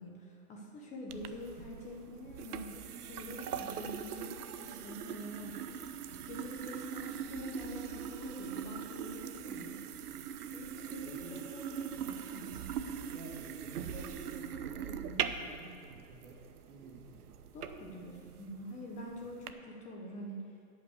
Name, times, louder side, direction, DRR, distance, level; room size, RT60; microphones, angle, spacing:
voice 1, 0.0-5.8 6.1-9.8 10.5-12.6 17.5-20.5, left 1 dB, 15° left, -1 dB, 1.1 m, -46 dB
sound 1, 1.1-19.5, right 8 dB, 90° right, 0.8 m, -42 dB
voice 2, 11.0-11.3 13.1-16.4 16.7-17.1, right 2 dB, 45° right, -4 dB, 2.7 m, -49 dB
11.5 x 5.7 x 8.2 m, 2.4 s
hypercardioid pair, 145°, 44 cm